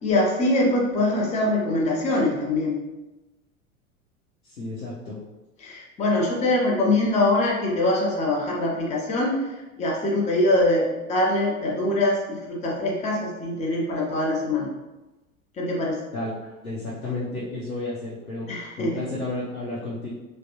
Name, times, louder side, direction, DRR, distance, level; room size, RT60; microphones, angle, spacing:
voice 1, 0.0-2.8 5.6-9.4 9.8-14.7 15.6-16.0 18.5-19.1, left 2 dB, 15° left, -3 dB, 0.6 m, -23 dB
voice 2, 4.4-5.2 16.1-16.3 16.6-18.5 18.8-20.1, left 2 dB, 85° left, -7 dB, 0.7 m, -32 dB
3.3 x 2.1 x 2.8 m, 1.1 s
figure-of-eight pair, 85°, 42 cm